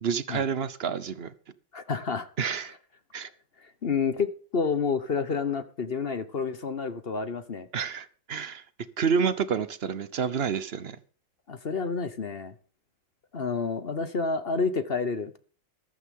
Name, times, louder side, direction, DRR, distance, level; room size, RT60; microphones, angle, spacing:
voice 1, 0.0-1.3 2.4-2.7 3.1-3.3 7.7-8.6 9.0-11.0, right 6 dB, 45° right, 13 dB, 0.8 m, -29 dB
voice 2, 1.7-2.3 3.2-3.3 3.6-7.7 11.5-12.5 13.3-15.4, left 5 dB, 40° left, 11 dB, 0.9 m, -29 dB
14.5 x 13.0 x 3.7 m, 0.42 s
omnidirectional pair, 2.0 m